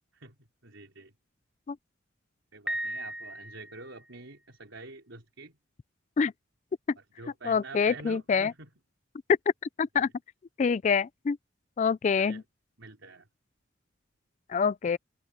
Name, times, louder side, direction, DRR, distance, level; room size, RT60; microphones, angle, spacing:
voice 1, 0.1-1.1 2.5-5.6 7.2-8.7 12.2-12.4 12.8-13.3, right 3 dB, 85° right, 3.8 m, -47 dB
Piano, 2.7-4.1, right 1 dB, 5° right, 1.0 m, -36 dB
voice 2, 7.5-8.5 9.8-10.1 10.6-11.4 11.8-12.4 14.5-15.0, left 6 dB, 35° left, 0.3 m, -26 dB
head